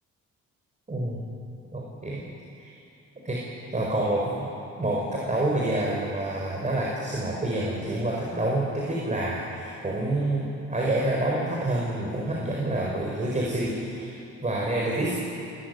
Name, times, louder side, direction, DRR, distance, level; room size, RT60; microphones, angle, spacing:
voice 1, 0.9-1.2 1.7-2.2 2.6-2.8 3.2-3.4 3.7-4.5 4.8-15.2, right 1 dB, 25° right, -3 dB, 5.0 m, -28 dB
29.0 x 14.0 x 9.5 m, 2.9 s
cardioid pair, 90°, 30 cm